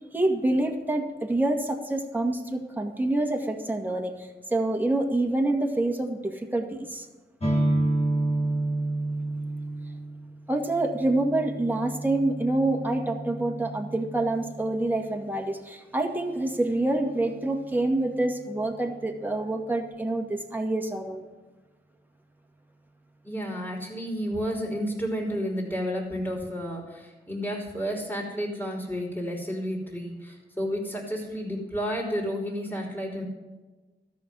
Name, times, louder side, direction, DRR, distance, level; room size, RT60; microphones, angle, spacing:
voice 1, 0.1-7.1 10.5-21.2, right 2 dB, 10° right, 2 dB, 2.0 m, -27 dB
sound 1, 7.4-15.0, right 2 dB, 35° left, 2.7 m, -30 dB
voice 2, 23.2-33.2, equal, 10° left, -1 dB, 3.4 m, -31 dB
13.0 x 6.5 x 9.4 m, 1.2 s
cardioid pair, 65°, 18 cm